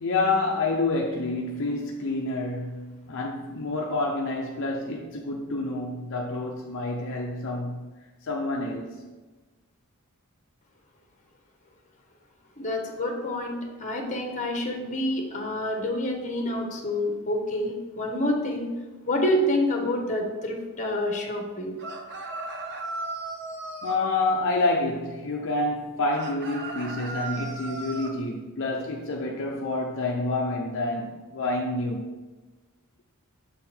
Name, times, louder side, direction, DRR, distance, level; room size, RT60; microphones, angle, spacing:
voice 1, 0.0-7.9 8.2-9.0 23.8-32.1, left 2 dB, 60° left, 0.6 m, -28 dB
voice 2, 12.6-18.7 19.0-21.7, left 1 dB, 35° left, 1.1 m, -28 dB
sound 1, 21.8-24.0 26.1-28.1, right 3 dB, 55° right, 0.8 m, -36 dB
7.1 x 3.9 x 4.4 m
head